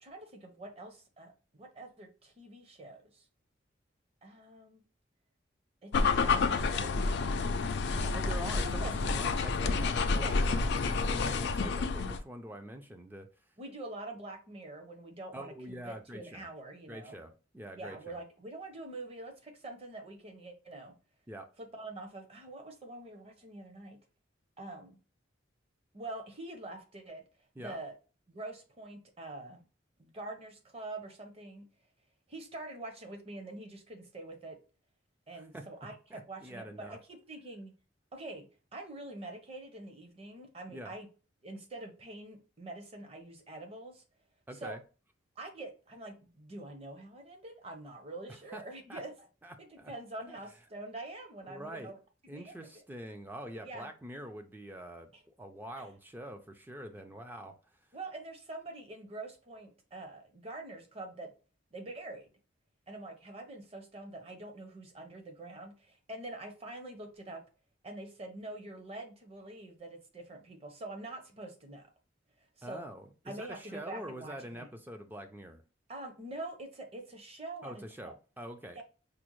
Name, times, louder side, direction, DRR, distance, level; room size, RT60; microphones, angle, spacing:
voice 1, 0.0-3.3 4.2-4.8 5.8-7.4 7.9-8.2 8.5-9.0 10.2-10.5 13.6-17.2 17.7-20.9 21.6-24.0 24.6-25.0 25.9-27.2 27.6-27.9 28.3-29.6 30.0-31.7 32.3-34.6 35.3-37.7 38.1-38.5 38.7-41.1 41.4-44.0 44.5-44.8 45.4-49.3 49.6-52.0 52.2-52.8 53.5-53.9 55.1-55.2 55.8-55.9 57.9-61.3 61.7-62.3 62.9-67.4 67.8-71.9 72.6-72.8 73.3-74.7 75.9-78.1 78.7-78.8, right 2 dB, 30° right, 0.7 m, -45 dB
sound 1, 5.9-12.2, left 4 dB, 60° left, 0.4 m, -29 dB
voice 2, 8.1-13.4 15.3-16.5 16.9-18.2 21.3-21.5 27.6-27.8 35.3-35.7 36.1-37.0 40.7-40.9 44.5-44.8 48.3-48.6 48.9-49.0 49.4-49.9 50.3-50.4 51.4-51.9 52.3-57.6 72.6-75.6 77.6-78.8, right 1 dB, 10° right, 0.3 m, -45 dB
5.0 x 2.0 x 3.0 m
head